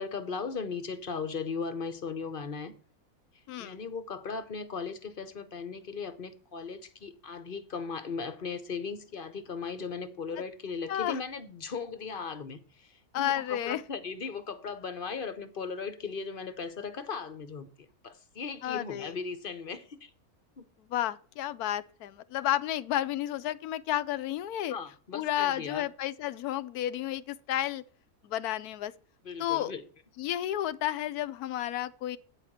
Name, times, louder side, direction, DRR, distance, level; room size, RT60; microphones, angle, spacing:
voice 1, 0.0-2.7 3.6-20.1 20.6-20.7 24.7-25.9 29.2-29.8, left 5 dB, 45° left, 0.9 m, -37 dB
voice 2, 3.5-3.8 10.9-11.2 13.1-13.8 18.6-19.2 20.9-24.8 25.1-27.8 28.2-28.9 29.4-29.7 30.2-32.2, left 12 dB, 85° left, 1.1 m, -31 dB
9.0 x 5.0 x 7.2 m
omnidirectional pair, 1.6 m